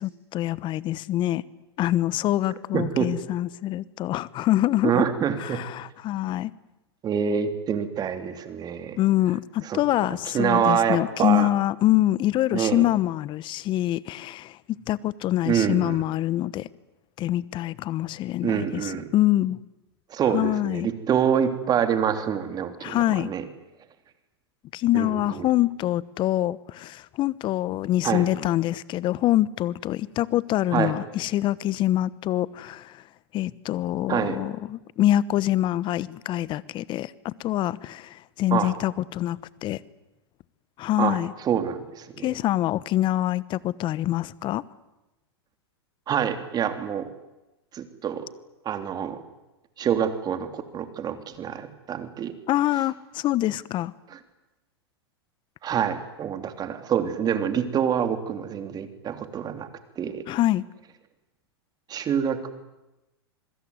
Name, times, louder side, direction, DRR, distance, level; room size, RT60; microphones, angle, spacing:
voice 1, 0.0-1.4 1.8-5.0 5.4-6.5 9.0-14.6 14.9-16.7 17.2-19.6 20.3-20.9 22.8-23.3 24.7-33.0 33.3-39.8 40.8-41.3 42.2-44.6 52.5-53.9 60.3-60.6, left 14 dB, 35° left, 1.1 m, -25 dB
voice 2, 2.7-3.1 4.8-5.6 7.0-9.0 9.6-11.5 12.5-12.9 15.4-16.1 18.4-19.1 20.1-23.4 24.9-25.5 28.0-28.2 30.7-31.0 34.1-34.4 38.5-38.7 41.0-42.3 46.1-47.1 47.7-48.3 48.6-49.2 49.8-52.3 54.1-54.2 55.6-59.7 60.0-60.2 61.9-62.5, right 8 dB, 30° right, 3.3 m, -26 dB
27.0 x 21.0 x 9.7 m
hypercardioid pair, 110°, 14 cm